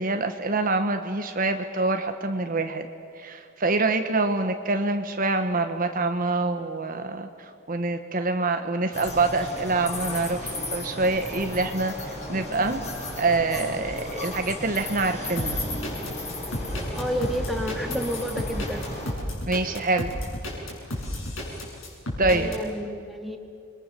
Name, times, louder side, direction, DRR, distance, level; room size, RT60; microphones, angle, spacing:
voice 1, 0.0-2.9 3.2-7.3 7.7-11.9 12.3-12.8 13.2-15.6 19.5-20.1 22.2-22.5, right 3 dB, 40° right, 7 dB, 1.2 m, -25 dB
sound 1, 8.9-19.1, left 1 dB, 30° left, 6.5 m, -34 dB
sound 2, 15.4-22.6, left 1 dB, 70° left, 7.5 m, -32 dB
voice 2, 16.9-18.9 22.3-23.4, equal, ahead, 4 dB, 2.0 m, -30 dB
29.0 x 23.5 x 6.9 m, 2.5 s
head